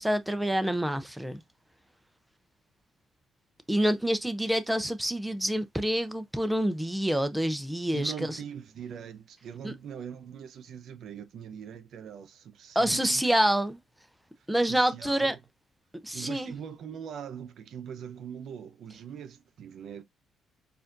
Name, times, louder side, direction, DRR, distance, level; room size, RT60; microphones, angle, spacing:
voice 1, 0.0-1.4 3.7-8.4 9.6-9.7 12.7-13.8 14.5-15.4 16.0-16.5, right 1 dB, 5° right, 0.6 m, -27 dB
voice 2, 7.9-13.2 14.4-15.4 16.1-20.0, right 8 dB, 70° right, 0.7 m, -42 dB
6.7 x 2.6 x 2.5 m
cardioid pair, 90°, 0 cm